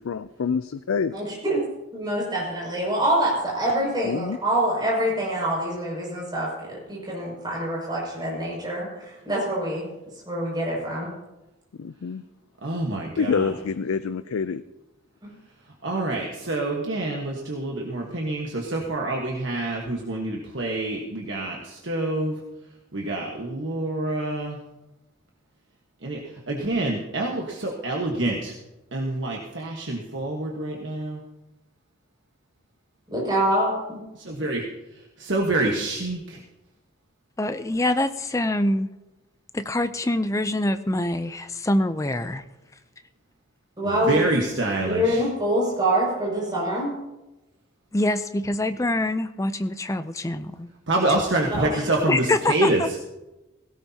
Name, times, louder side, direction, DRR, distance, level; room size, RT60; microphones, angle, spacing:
voice 1, 0.0-1.2 4.0-4.4 11.8-12.2 13.2-14.6, left 5 dB, 90° left, 12 dB, 0.4 m, -26 dB
voice 2, 1.1-1.6 1.9-9.9 10.2-11.1 15.2-15.3 33.1-34.0 43.8-44.3 44.8-46.9 51.5-51.9, right 1 dB, 20° right, -4 dB, 6.2 m, -25 dB
voice 3, 12.6-13.3 15.8-22.4 22.9-24.6 26.0-26.2 26.5-28.5 28.9-31.2 34.2-34.6 35.2-36.4 44.0-45.2 50.9-52.8, right 2 dB, 60° right, -1 dB, 1.4 m, -26 dB
voice 4, 37.4-38.9 39.5-42.4 47.9-50.7 52.1-52.9, left 1 dB, 15° left, 10 dB, 0.5 m, -25 dB
17.0 x 17.0 x 2.9 m, 1.0 s
head